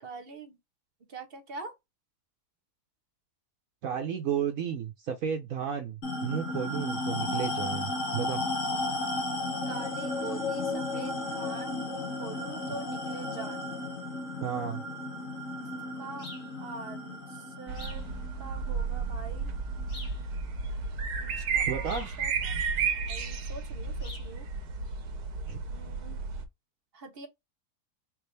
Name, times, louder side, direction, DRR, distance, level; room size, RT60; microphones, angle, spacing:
voice 1, 0.0-0.6 1.1-1.7 9.7-13.7 16.0-16.3 16.6-18.0 18.4-19.5 21.2-22.6 22.9-24.5 25.6-26.3 26.9-27.3, right 4 dB, 40° right, 1.0 m, -44 dB
voice 2, 3.8-8.4 14.4-14.8 21.7-22.3 25.5-25.6, right 8 dB, 65° right, 1.0 m, -33 dB
sound 1, 6.0-20.8, left 2 dB, 55° left, 1.7 m, -34 dB
sound 2, 16.2-16.5 17.7-18.1 19.9-20.2 21.9-22.2 24.0-24.3, left 2 dB, 35° left, 2.0 m, -45 dB
sound 3, 17.7-26.5, right 5 dB, 80° right, 1.3 m, -33 dB
4.6 x 2.5 x 3.2 m
omnidirectional pair, 1.7 m